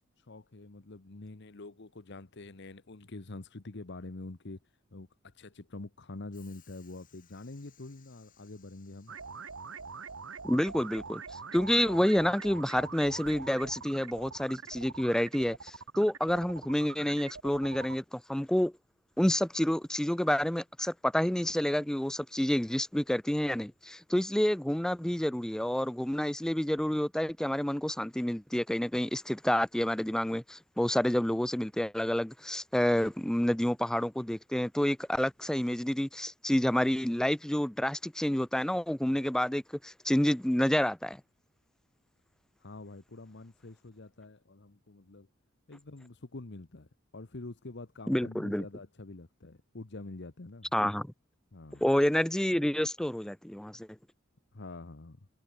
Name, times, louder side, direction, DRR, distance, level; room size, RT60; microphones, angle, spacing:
voice 1, 0.3-4.6 4.9-9.1 42.6-45.3 45.7-50.7 51.5-51.8 54.5-55.3, left 2 dB, 60° left, 1.1 m, -46 dB
Train / Sliding door, 6.3-14.3, left 5 dB, 45° left, 4.4 m, -64 dB
sound 1, 9.1-18.0, right 5 dB, 85° right, 1.8 m, -44 dB
voice 2, 10.4-18.7 19.2-41.2 48.1-48.7 50.7-51.1 51.8-53.9, equal, 5° left, 0.3 m, -29 dB
head